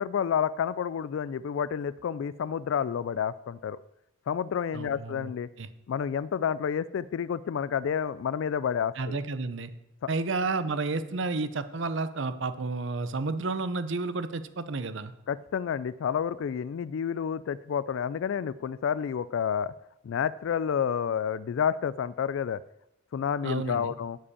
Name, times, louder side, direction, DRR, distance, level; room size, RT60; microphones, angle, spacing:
voice 1, 0.0-3.8 4.3-5.5 5.9-9.2 15.3-19.7 20.0-22.6 23.1-24.2, left 7 dB, 70° left, 18 dB, 0.3 m, -29 dB
voice 2, 4.7-5.3 5.6-5.7 9.0-9.7 10.1-15.1 23.4-23.9, right 3 dB, 65° right, 12 dB, 0.7 m, -31 dB
11.0 x 5.2 x 8.5 m, 0.89 s
head